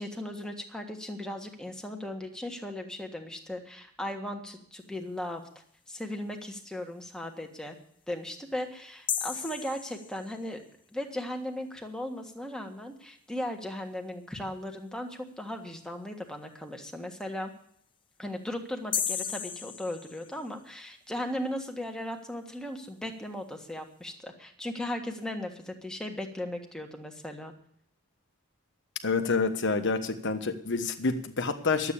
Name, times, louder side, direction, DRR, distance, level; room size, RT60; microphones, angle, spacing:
voice 1, 0.0-5.4 5.9-7.7 8.1-10.6 10.9-17.5 18.2-27.5, left 1 dB, 5° left, 3 dB, 1.5 m, -37 dB
sound 1, 9.1-10.6 18.9-20.7, left 8 dB, 20° left, 0.5 m, -34 dB
voice 2, 29.0-31.9, left 4 dB, 55° left, 8 dB, 1.3 m, -28 dB
12.0 x 8.4 x 8.5 m, 0.66 s
head